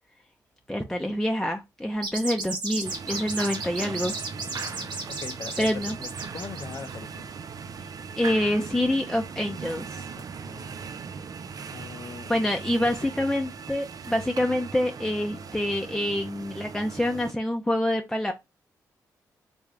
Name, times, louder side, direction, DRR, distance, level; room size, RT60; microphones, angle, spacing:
voice 1, 0.7-4.1 5.6-6.0 8.2-10.0 12.3-18.3, left 1 dB, 5° left, 0.6 m, -26 dB
sound 1, 1.9-6.9, right 3 dB, 80° right, 1.1 m, -34 dB
sound 2, 2.8-17.3, right 5 dB, 50° right, 0.4 m, -39 dB
voice 2, 4.3-7.3 10.2-10.8 11.7-12.5 12.8-13.3, left 6 dB, 50° left, 0.5 m, -42 dB
3.4 x 2.4 x 3.2 m
supercardioid pair, 45°, 8 cm